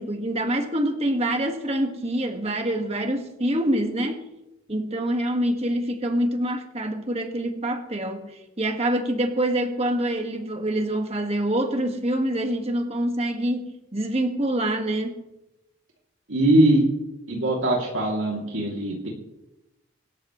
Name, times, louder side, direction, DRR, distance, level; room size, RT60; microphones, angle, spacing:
voice 1, 0.0-4.2 4.7-15.2, right 1 dB, 30° right, 4 dB, 1.8 m, -26 dB
voice 2, 16.3-16.8 17.3-19.1, right 1 dB, 80° right, -2 dB, 2.9 m, -21 dB
24.5 x 13.5 x 3.2 m, 0.94 s
head